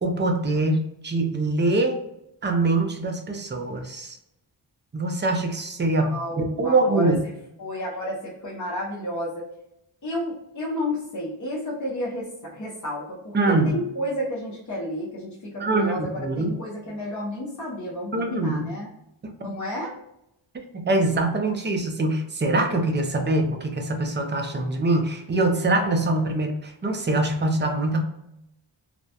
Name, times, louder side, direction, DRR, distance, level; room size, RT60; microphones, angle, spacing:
voice 1, 0.0-2.0 2.4-4.2 4.9-7.2 13.3-13.8 15.6-16.6 18.1-18.7 19.4-19.5 20.7-28.0, right 2 dB, 25° right, 4 dB, 0.3 m, -23 dB
voice 2, 6.0-7.3 7.6-9.5 10.0-18.9 19.4-20.0, equal, 40° left, -6 dB, 0.6 m, -31 dB
2.3 x 2.1 x 2.7 m, 0.81 s
wide cardioid pair, 85°, 48 cm